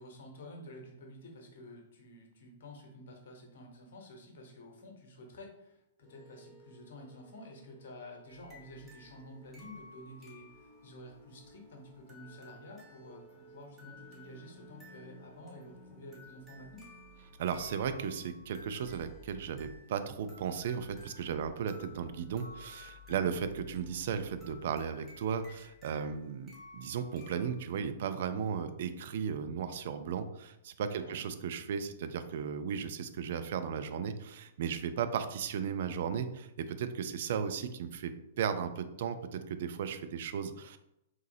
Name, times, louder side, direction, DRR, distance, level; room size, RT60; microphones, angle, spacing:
voice 1, 0.0-16.9 23.1-23.3 30.9-31.2, left 1 dB, 50° left, 1 dB, 0.9 m, -50 dB
sound 1, 6.0-22.6, right 1 dB, 20° right, 0.8 m, -58 dB
sound 2, 8.3-27.7, left 3 dB, 5° right, 1.1 m, -56 dB
voice 2, 17.4-40.8, right 7 dB, 50° right, 9 dB, 0.3 m, -35 dB
3.6 x 2.8 x 2.7 m, 0.83 s
figure-of-eight pair, 110°, 0 cm